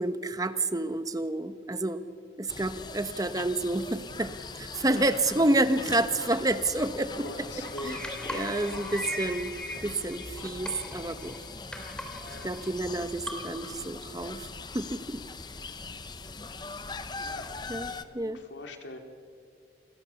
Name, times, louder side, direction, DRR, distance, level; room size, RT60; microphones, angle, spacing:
voice 1, 0.0-2.0 2.4-8.0 8.3-9.5 9.8-11.4 12.4-14.5 14.7-15.2 17.7-18.4, right 2 dB, 20° right, 11 dB, 0.9 m, -29 dB
sound 1, 2.5-18.0, left 4 dB, 25° left, 0.8 m, -41 dB
sound 2, 6.6-13.8, equal, 5° left, 3.0 m, -40 dB
voice 2, 7.2-9.3 12.2-12.5 17.2-17.5 17.8-19.0, left 2 dB, 90° left, 5 dB, 2.8 m, -44 dB
28.0 x 21.5 x 7.1 m, 2.4 s
head